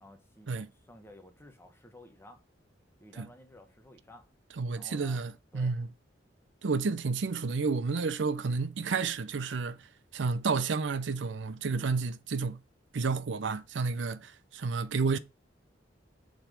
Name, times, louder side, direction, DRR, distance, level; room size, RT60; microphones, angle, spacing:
voice 1, 0.0-2.4 3.0-4.3 4.7-5.2 5.5-5.7 11.7-12.1, left 1 dB, 15° left, 1.2 m, -54 dB
voice 2, 4.6-5.9 6.6-9.9 10.1-12.6 12.9-15.2, right 4 dB, 75° right, 0.6 m, -31 dB
7.0 x 4.0 x 5.1 m
head